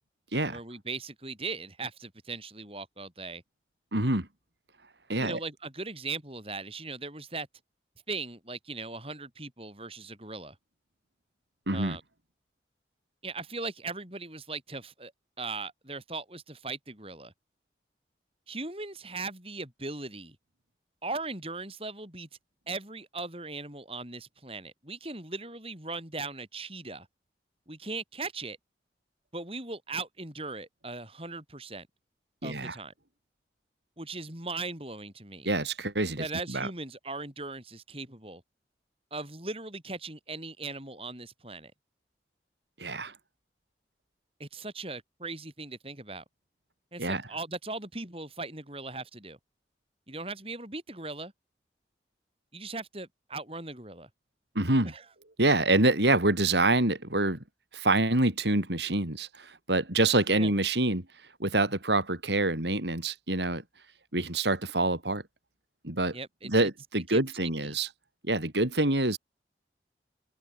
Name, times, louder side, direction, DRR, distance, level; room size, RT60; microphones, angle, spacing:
voice 1, 0.5-3.4 5.2-7.5 8.1-10.6 11.7-12.0 13.2-15.1 15.4-17.3 18.5-20.4 21.0-22.3 22.7-27.1 27.7-28.6 29.3-31.9 32.4-32.9 34.0-35.5 36.2-38.4 39.1-41.7 44.4-46.2 46.9-49.4 50.1-51.3 52.5-54.1 54.8-55.0 60.4-60.5 66.1-66.7 67.1-67.2 67.6-67.8, right 3 dB, 30° right, 7.7 m, -39 dB
voice 2, 3.9-4.3 5.1-5.4 11.7-12.0 32.4-32.7 35.4-36.7 42.8-43.1 47.0-47.2 54.5-54.9 55.4-57.4 57.7-61.0 61.4-63.6 64.1-65.2 65.8-66.2 66.4-67.9 68.3-69.2, right 2 dB, 80° right, 4.3 m, -26 dB
open air
head